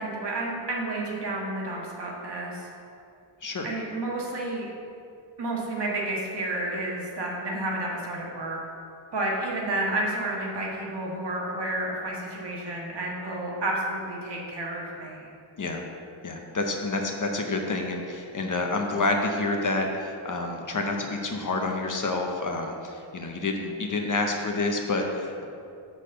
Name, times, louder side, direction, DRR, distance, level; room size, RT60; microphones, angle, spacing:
voice 1, 0.0-2.7 3.6-4.7 5.4-8.6 9.1-15.3, right 2 dB, 55° right, -3 dB, 1.5 m, -31 dB
voice 2, 16.2-25.5, left 2 dB, 40° left, 2 dB, 0.7 m, -28 dB
6.7 x 4.1 x 6.4 m, 2.5 s
wide cardioid pair, 135°, 48 cm